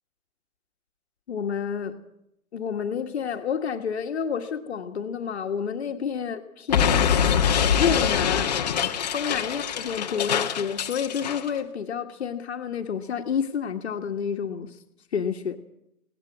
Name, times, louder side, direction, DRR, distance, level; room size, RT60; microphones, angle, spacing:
voice 1, 1.3-2.0 2.5-7.2 7.8-8.5 9.1-14.8 15.1-15.6, left 7 dB, 45° left, 5 dB, 1.6 m, -29 dB
Explosion, 6.7-11.5, left 8 dB, 30° left, 1.2 m, -24 dB
20.5 x 18.0 x 7.5 m, 0.80 s
hypercardioid pair, 175°, 44 cm